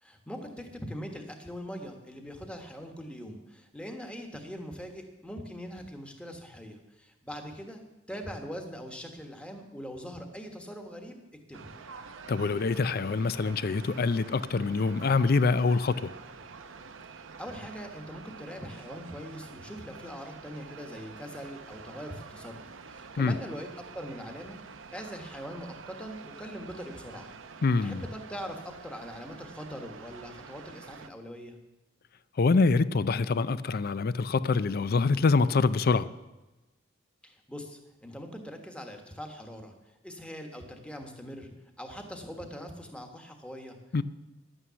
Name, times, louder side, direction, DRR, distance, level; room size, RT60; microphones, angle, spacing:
voice 1, 0.0-7.8 8.1-11.2 11.5-11.7 17.0-24.6 24.9-27.3 27.8-31.6 37.2-39.7 40.0-43.8, equal, 5° left, 1.3 m, -42 dB
sound 1, 11.5-31.1, right 5 dB, 75° right, 0.8 m, -47 dB
voice 2, 12.3-16.1 23.2-23.4 27.6-28.0 32.4-36.1 43.9-44.0, left 4 dB, 50° left, 0.4 m, -25 dB
11.0 x 9.0 x 6.9 m
head